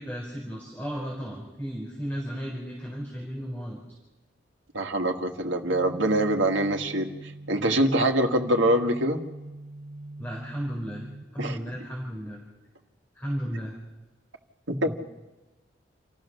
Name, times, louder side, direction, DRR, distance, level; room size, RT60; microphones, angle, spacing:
voice 1, 0.0-3.8 10.2-12.4 13.1-13.8 14.8-14.9, equal, 10° left, -3 dB, 4.7 m, -34 dB
voice 2, 4.7-7.1 7.5-9.2 11.4-11.6 14.7-14.9, right 1 dB, 80° right, 3 dB, 1.8 m, -24 dB
sound 1, 5.7-11.2, right 2 dB, 35° right, 0.7 m, -43 dB
28.5 x 15.0 x 6.4 m, 1.1 s
head